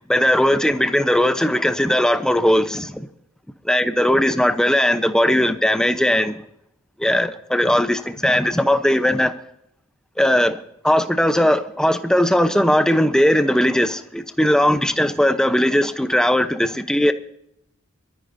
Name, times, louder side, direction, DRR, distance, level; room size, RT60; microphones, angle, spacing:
voice 1, 0.1-3.1 3.7-6.4 7.0-9.3 10.2-10.6 10.8-17.1, left 1 dB, 5° left, 0.8 m, -18 dB
23.5 x 13.5 x 2.7 m
head